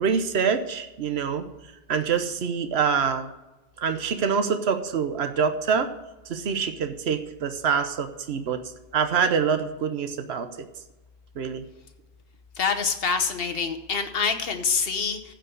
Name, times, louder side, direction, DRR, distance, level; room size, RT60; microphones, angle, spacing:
voice 1, 0.0-1.5 1.9-3.3 3.8-5.9 6.3-8.6 8.9-10.5 11.4-11.6, right 6 dB, 85° right, 8 dB, 1.1 m, -25 dB
voice 2, 12.6-15.3, left 5 dB, 65° left, 8 dB, 1.2 m, -26 dB
14.5 x 5.2 x 6.4 m, 1.1 s
omnidirectional pair, 1.1 m